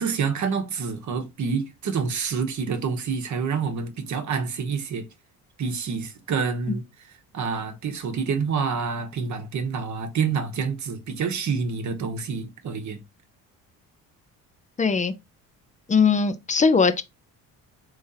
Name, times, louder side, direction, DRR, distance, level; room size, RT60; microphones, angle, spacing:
voice 1, 0.0-5.1 5.6-6.8 7.3-13.0, right 5 dB, 50° right, 0.9 m, -27 dB
voice 2, 14.8-15.1 15.9-17.0, left 5 dB, 20° left, 0.5 m, -20 dB
3.6 x 3.1 x 2.6 m
supercardioid pair, 80°, 38 cm